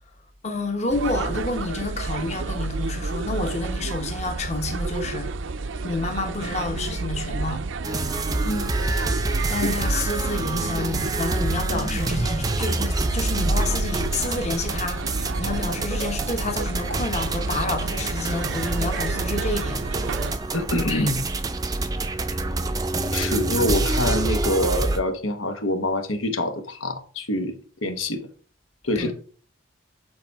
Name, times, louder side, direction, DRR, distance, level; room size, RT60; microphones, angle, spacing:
voice 1, 0.4-5.3 5.8-7.7 9.5-19.8 28.9-29.1, left 2 dB, 35° left, 1.0 m, -29 dB
sound 1, 0.9-20.4, right 3 dB, 75° right, 0.5 m, -30 dB
sound 2, 7.8-25.0, right 2 dB, 20° right, 0.5 m, -27 dB
voice 2, 20.5-21.2 23.1-27.5 27.8-28.3 28.8-29.1, left 1 dB, 90° left, 1.2 m, -25 dB
7.7 x 4.2 x 4.6 m
head